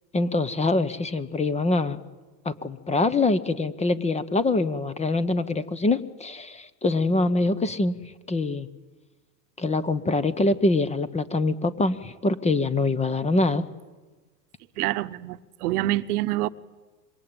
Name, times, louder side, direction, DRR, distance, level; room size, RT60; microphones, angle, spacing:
voice 1, 0.1-2.0 2.4-8.0 8.3-8.7 9.6-13.6, left 2 dB, 15° left, 1.0 m, -24 dB
voice 2, 14.8-16.5, right 16 dB, 70° right, 1.1 m, -26 dB
26.0 x 23.0 x 8.8 m
hypercardioid pair, 115°, 48 cm